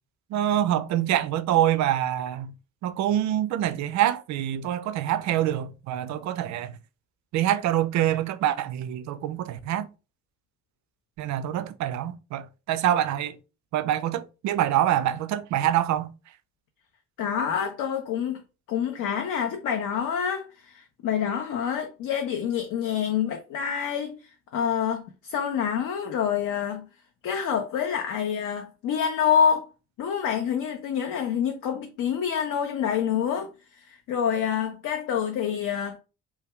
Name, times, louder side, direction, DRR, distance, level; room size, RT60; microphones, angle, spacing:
voice 1, 0.3-2.5 2.8-6.7 7.3-9.9 11.2-13.4 13.7-16.1, right 12 dB, 40° right, 0.4 m, -25 dB
voice 2, 17.2-18.4 18.7-24.2 24.5-26.9 27.2-29.7 30.0-33.5 33.8-36.0, left 8 dB, 45° left, 0.6 m, -27 dB
2.6 x 2.3 x 3.2 m
figure-of-eight pair, 40°, 44 cm